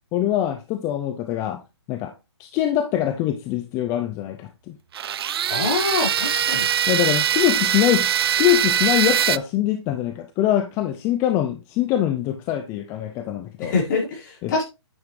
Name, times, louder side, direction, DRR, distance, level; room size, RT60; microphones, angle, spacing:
voice 1, 0.1-1.6 1.9-2.1 2.4-4.8 6.9-8.1 8.4-13.7 14.4-14.6, left 12 dB, 20° left, 0.6 m, -23 dB
sound 1, 4.9-9.4, right 10 dB, 60° right, 0.4 m, -22 dB
voice 2, 5.5-6.7 13.6-14.6, left 4 dB, 45° left, 4.8 m, -24 dB
9.6 x 7.3 x 3.2 m
hypercardioid pair, 155°, 14 cm